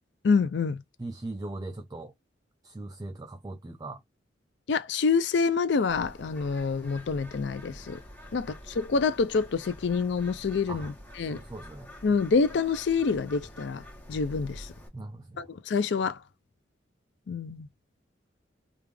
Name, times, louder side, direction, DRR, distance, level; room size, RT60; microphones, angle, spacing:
voice 1, 0.2-0.8 4.7-8.0 8.3-11.4 12.0-13.8 14.1-14.7 15.4-16.2 17.3-17.7, left 5 dB, 70° left, 0.4 m, -27 dB
voice 2, 1.0-2.1 2.6-4.0 10.7-10.9 11.3-11.9 14.9-15.5, right 2 dB, 20° right, 0.4 m, -39 dB
Bird, 5.9-14.9, equal, 10° left, 1.3 m, -47 dB
3.3 x 2.4 x 3.3 m
head